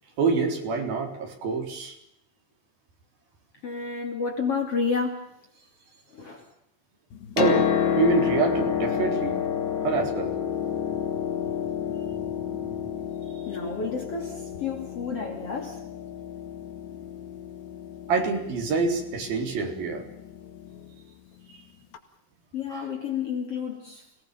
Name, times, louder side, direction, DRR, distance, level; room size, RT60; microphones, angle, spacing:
voice 1, 0.2-1.9 7.4-9.4 9.8-10.3 18.1-20.0 22.7-22.9, right 5 dB, 60° right, 5.9 m, -26 dB
voice 2, 3.6-5.2 6.1-6.4 10.6-10.8 12.2-13.1 13.5-15.8 22.5-24.2, left 5 dB, 40° left, 3.1 m, -31 dB
Piano, 7.1-20.9 21.9-22.0, left 8 dB, 85° left, 4.4 m, -30 dB
28.5 x 19.0 x 7.0 m
omnidirectional pair, 4.9 m